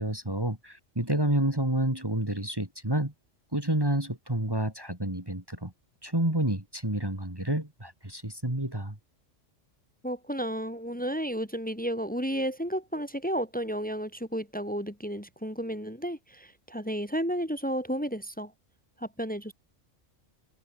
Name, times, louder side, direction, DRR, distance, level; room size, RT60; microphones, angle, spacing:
voice 1, 0.0-3.1 3.5-5.7 6.0-9.0, right 1 dB, 20° right, 3.0 m, -29 dB
voice 2, 10.0-18.5 19.0-19.5, equal, 5° left, 3.0 m, -32 dB
omnidirectional pair, 1.3 m